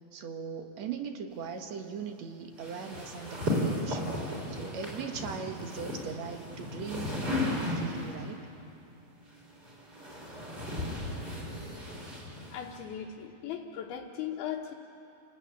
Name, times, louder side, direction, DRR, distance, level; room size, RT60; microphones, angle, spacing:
voice 1, 0.1-8.4, right 6 dB, 55° right, 5 dB, 2.3 m, -40 dB
sound 1, 2.6-8.2 9.3-12.8, left 1 dB, 25° right, 5.8 m, -35 dB
voice 2, 12.5-14.7, left 9 dB, 85° left, -3 dB, 3.2 m, -38 dB
30.0 x 18.0 x 9.6 m, 2.7 s
omnidirectional pair, 4.3 m